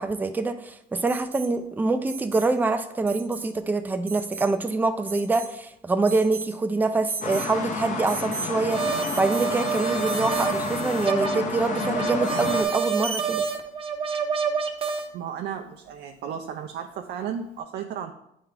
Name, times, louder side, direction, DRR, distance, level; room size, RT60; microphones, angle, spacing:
voice 1, 0.0-13.4, right 3 dB, 10° right, 8 dB, 0.4 m, -25 dB
Alarm, 1.1-1.5 2.1-2.5 3.1-3.5 4.1-4.5 5.1-5.6 6.1-6.5 7.1-7.5 8.1-8.5 9.1-9.6 10.1-10.6 12.3-12.4, right 5 dB, 55° right, 0.9 m, -37 dB
sound 1, 7.2-12.6, left 4 dB, 50° left, 0.8 m, -31 dB
sound 2, 8.7-15.1, right 6 dB, 35° right, 0.8 m, -28 dB
voice 2, 15.1-18.1, right 8 dB, 75° right, 4 dB, 0.5 m, -34 dB
8.9 x 3.6 x 3.3 m, 0.78 s
cardioid pair, 110°, 17 cm